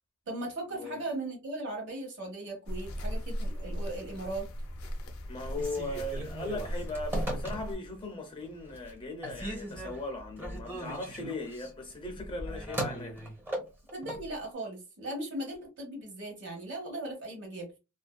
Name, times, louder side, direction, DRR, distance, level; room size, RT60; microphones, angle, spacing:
voice 1, 0.3-4.5 13.9-17.7, right 2 dB, 60° right, 1.0 m, -38 dB
sound 1, 2.7-7.8, equal, 75° left, 0.5 m, -37 dB
voice 2, 5.3-13.2, left 2 dB, 25° left, 0.5 m, -38 dB
Telephone, 5.5-8.0 8.4-8.9 9.2-14.3, right 1 dB, 10° right, 0.7 m, -38 dB
2.5 x 2.2 x 2.2 m
head